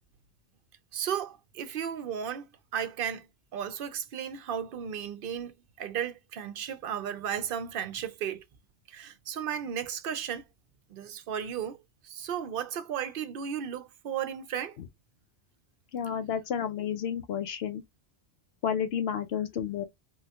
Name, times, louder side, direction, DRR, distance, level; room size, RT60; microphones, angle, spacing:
voice 1, 0.9-3.3 3.5-8.4 8.9-10.5 10.9-14.8, right 8 dB, 60° right, 0.7 m, -35 dB
voice 2, 15.9-17.8 18.6-19.8, left 8 dB, 70° left, 0.8 m, -31 dB
3.6 x 2.2 x 2.8 m
omnidirectional pair, 1.1 m